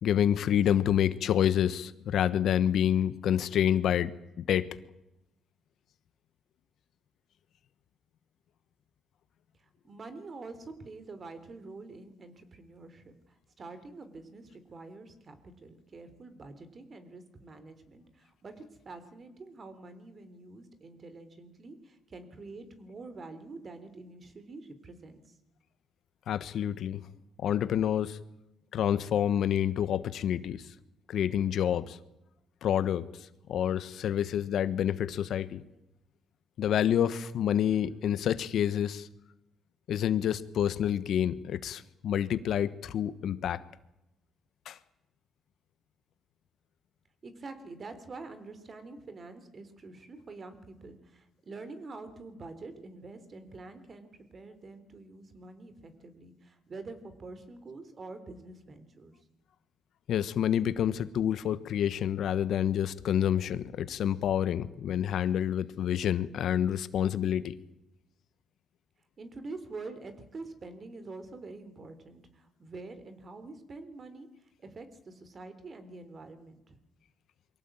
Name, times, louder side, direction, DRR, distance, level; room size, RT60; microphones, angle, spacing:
voice 1, 0.0-4.7 26.3-27.0 27.4-28.2 28.7-30.7 31.1-32.0 32.6-35.6 36.6-39.1 39.9-43.6 44.7-44.8 60.1-67.5, left 10 dB, 70° left, 14 dB, 1.2 m, -28 dB
voice 2, 9.8-25.4 47.2-59.2 69.2-76.8, right 3 dB, 40° right, 11 dB, 3.7 m, -46 dB
23.5 x 17.0 x 9.0 m, 0.90 s
cardioid pair, 90°, 0 cm